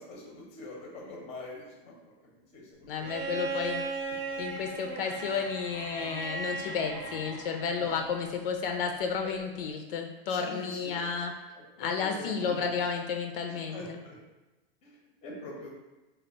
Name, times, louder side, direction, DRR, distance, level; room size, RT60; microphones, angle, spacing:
voice 1, 0.0-1.9 2.5-2.9 7.8-8.0 9.2-9.3 10.3-10.9 11.8-12.7 13.7-14.1 14.8-15.7, left 2 dB, 20° left, -2 dB, 0.6 m, -43 dB
voice 2, 2.9-3.9 4.4-11.3 11.8-14.0, left 6 dB, 70° left, 4 dB, 0.5 m, -32 dB
Bowed string instrument, 3.0-8.1 9.5-9.6, right 3 dB, 30° right, 0.7 m, -37 dB
3.2 x 2.0 x 3.9 m, 1.1 s
supercardioid pair, 165°, 29 cm